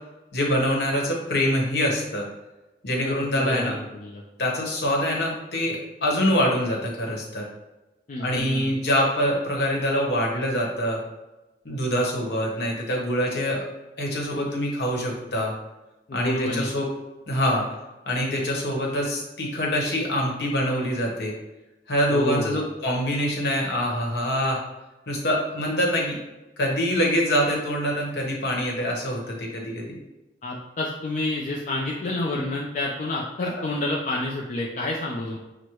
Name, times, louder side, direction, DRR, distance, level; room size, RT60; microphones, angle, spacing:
voice 1, 0.3-2.2 2.8-3.7 4.4-7.4 8.2-11.0 11.6-13.6 14.0-15.5 16.1-16.8 17.3-17.6 18.1-21.3 21.9-24.6 25.1-26.2 26.6-30.0, equal, 65° left, -1 dB, 1.0 m, -25 dB
voice 2, 3.0-4.2 8.1-8.8 16.1-16.7 22.1-22.6 30.4-35.4, left 2 dB, 45° left, -2 dB, 0.4 m, -29 dB
6.1 x 2.1 x 3.0 m, 1.0 s
head